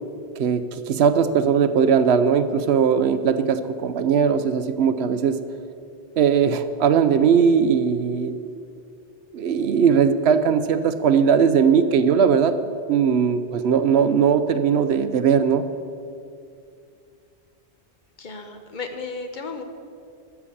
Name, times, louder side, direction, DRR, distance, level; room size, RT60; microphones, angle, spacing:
voice 1, 0.4-5.4 6.2-8.3 9.3-12.5 12.9-15.6, right 7 dB, 70° right, 11 dB, 0.9 m, -19 dB
voice 2, 18.2-19.6, left 4 dB, 45° left, 6 dB, 1.2 m, -34 dB
13.5 x 7.0 x 7.1 m, 2.4 s
omnidirectional pair, 1.2 m